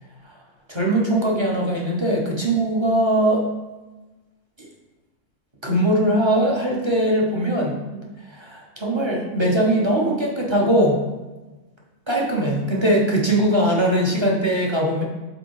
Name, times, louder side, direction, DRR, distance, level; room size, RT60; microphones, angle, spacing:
voice 1, 0.7-3.4 4.6-4.7 5.6-11.0 12.1-15.0, right 1 dB, 20° right, -3 dB, 1.0 m, -21 dB
5.3 x 4.4 x 4.7 m, 1.2 s
omnidirectional pair, 1.4 m